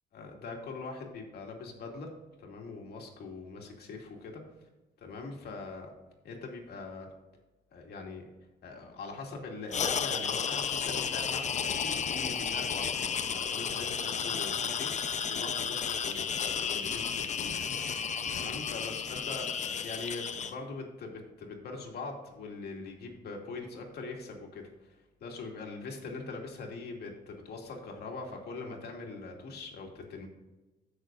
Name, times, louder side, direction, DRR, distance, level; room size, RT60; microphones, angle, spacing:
voice 1, 0.1-2.1 2.4-4.4 5.0-5.9 6.2-7.1 7.7-8.2 8.6-14.9 15.3-25.0 25.2-30.3, left 3 dB, 65° left, 1 dB, 2.5 m, -42 dB
sound 1, 9.7-20.5, left 7 dB, 40° left, 0.7 m, -33 dB
16.0 x 6.6 x 2.6 m, 1.1 s
cardioid pair, 95°, 18 cm